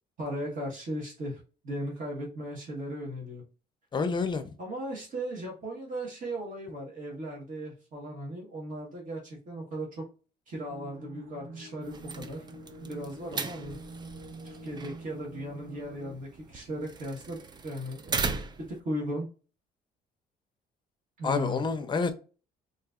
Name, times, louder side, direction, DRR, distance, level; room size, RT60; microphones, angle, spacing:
voice 1, 0.2-3.4 4.6-10.0 10.5-12.4 12.8-13.8 14.4-19.3 21.2-21.7, equal, 50° right, -2 dB, 1.3 m, -37 dB
voice 2, 3.9-4.4 21.2-22.1, left 4 dB, 25° left, 9 dB, 0.6 m, -28 dB
sound 1, 10.7-16.1, right 1 dB, 75° right, 1.0 m, -45 dB
sound 2, 11.8-18.8, right 4 dB, 25° right, 0.4 m, -38 dB
3.8 x 2.6 x 2.4 m, 0.35 s
cardioid pair, 110°, 17 cm